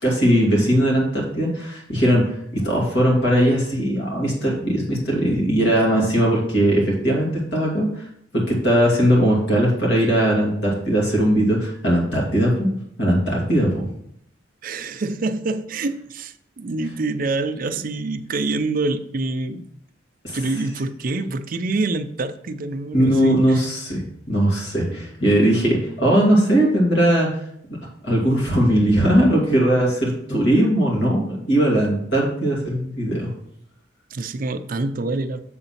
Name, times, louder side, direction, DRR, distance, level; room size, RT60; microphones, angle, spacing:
voice 1, 0.0-2.3 2.5-8.0 8.3-12.7 13.0-13.8 20.2-20.4 22.9-24.0 24.3-27.3 28.0-33.3, equal, 65° left, -3 dB, 2.6 m, -19 dB
voice 2, 14.6-19.7 20.3-23.6 34.1-35.4, right 3 dB, 50° right, 9 dB, 0.5 m, -26 dB
7.0 x 3.9 x 5.7 m, 0.70 s
head